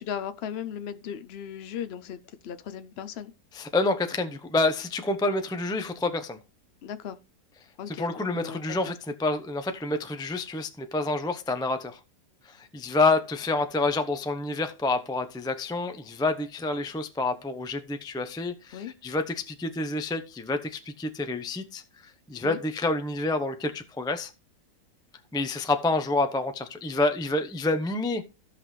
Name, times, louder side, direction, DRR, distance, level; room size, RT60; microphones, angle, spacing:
voice 1, 0.0-3.3 6.8-7.2 7.8-8.6 8.9-9.0 18.7-18.9 22.4-22.6, left 8 dB, 70° left, 0.6 m, -37 dB
voice 2, 3.5-6.4 7.9-8.9 9.2-12.0 12.5-21.8 22.3-24.3 25.3-28.2, left 2 dB, 5° left, 0.4 m, -28 dB
15.5 x 5.8 x 3.2 m
omnidirectional pair, 1.8 m